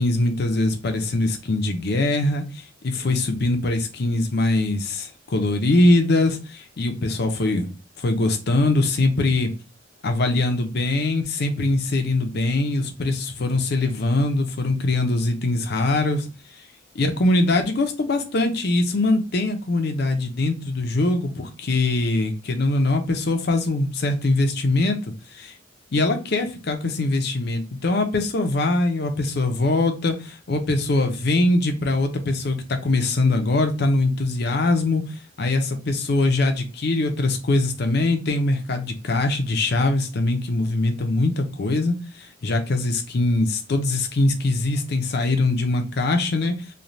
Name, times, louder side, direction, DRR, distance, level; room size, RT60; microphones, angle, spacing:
voice 1, 0.0-7.7 8.0-9.5 10.0-16.3 16.9-25.0 25.3-25.5 25.9-35.0 35.4-46.5, left 2 dB, 55° left, 6 dB, 0.5 m, -22 dB
3.1 x 2.2 x 2.5 m, 0.31 s
head